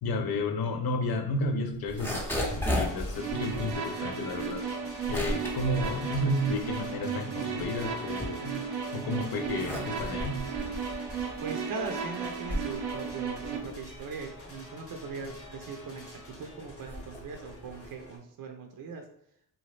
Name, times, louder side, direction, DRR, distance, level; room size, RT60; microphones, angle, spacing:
voice 1, 0.0-4.7 5.1-8.6 8.9-10.5, left 1 dB, 55° left, 5 dB, 0.6 m, -32 dB
sound 1, 1.7-7.0 7.4-8.8 9.3-18.1, equal, 5° left, 0.8 m, -36 dB
sound 2, 2.0-18.2, left 1 dB, 30° left, 0.9 m, -48 dB
sound 3, 3.2-13.6, right 6 dB, 90° right, 0.6 m, -35 dB
voice 2, 11.4-19.1, right 4 dB, 45° right, 4 dB, 0.6 m, -40 dB
2.7 x 2.3 x 3.2 m, 0.74 s
supercardioid pair, 60°, 45 cm